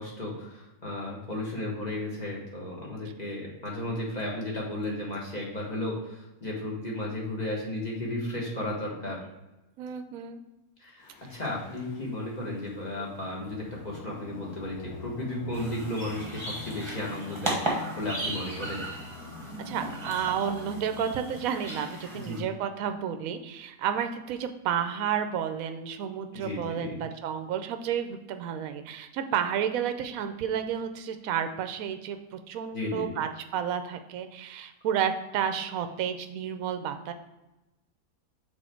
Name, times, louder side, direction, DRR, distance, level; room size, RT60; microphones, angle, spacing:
voice 1, 0.0-9.2 10.8-18.8 22.0-22.5 26.3-27.0 32.7-33.1, left 1 dB, 30° left, -3 dB, 1.6 m, -34 dB
voice 2, 9.8-10.4 13.0-13.1 19.6-37.1, right 8 dB, 70° right, 8 dB, 1.0 m, -31 dB
Singing, 11.0-22.3, left 5 dB, 85° left, 1.3 m, -46 dB
sound 1, 15.5-22.4, right 2 dB, 20° right, 1.3 m, -36 dB
6.3 x 4.1 x 4.4 m, 1.0 s
omnidirectional pair, 1.6 m